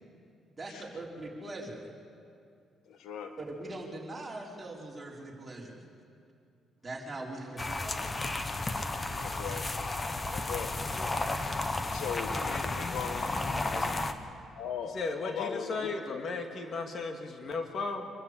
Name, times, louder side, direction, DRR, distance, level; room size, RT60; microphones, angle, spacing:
voice 1, 0.6-1.9 3.4-5.8 6.8-8.2, right 2 dB, 20° right, -3 dB, 4.8 m, -41 dB
voice 2, 2.9-3.3 9.1-9.7 10.3-10.8 11.9-14.1 14.5-15.0 15.2-16.2, left 7 dB, 80° left, 6 dB, 1.6 m, -39 dB
sound 1, 7.6-14.1, left 2 dB, 25° left, 1.3 m, -33 dB
voice 3, 10.7-11.1 13.7-13.9 14.9-18.1, left 3 dB, 55° left, 4 dB, 2.2 m, -36 dB
26.5 x 13.5 x 8.5 m, 2.4 s
cardioid pair, 90°, 0 cm